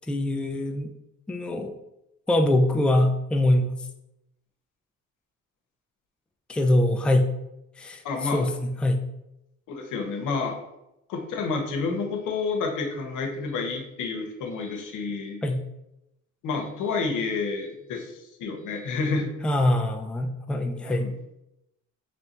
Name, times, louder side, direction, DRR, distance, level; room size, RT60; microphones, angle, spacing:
voice 1, 0.1-0.9 1.3-1.7 2.3-3.7 6.5-7.3 7.8-9.0 15.4-15.6 19.4-21.1, left 1 dB, 5° left, 5 dB, 0.3 m, -23 dB
voice 2, 8.0-8.4 9.7-10.6 11.1-15.4 16.4-19.3 20.9-21.1, left 4 dB, 85° left, 4 dB, 0.8 m, -29 dB
3.2 x 2.6 x 4.3 m, 0.86 s
cardioid pair, 90°, 30 cm